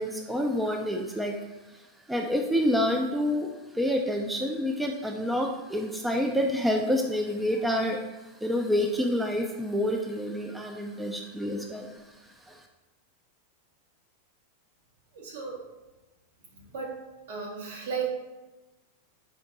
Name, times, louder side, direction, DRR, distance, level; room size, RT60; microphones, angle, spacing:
voice 1, 0.0-1.3 1.7-1.8 2.1-8.0 8.4-11.9 12.5-12.6, equal, 5° right, 2 dB, 0.3 m, -28 dB
voice 2, 15.1-15.6 16.5-17.0 17.3-18.1, right 6 dB, 60° right, -1 dB, 1.0 m, -35 dB
4.5 x 2.6 x 3.7 m, 1.1 s
figure-of-eight pair, 90°, 0 cm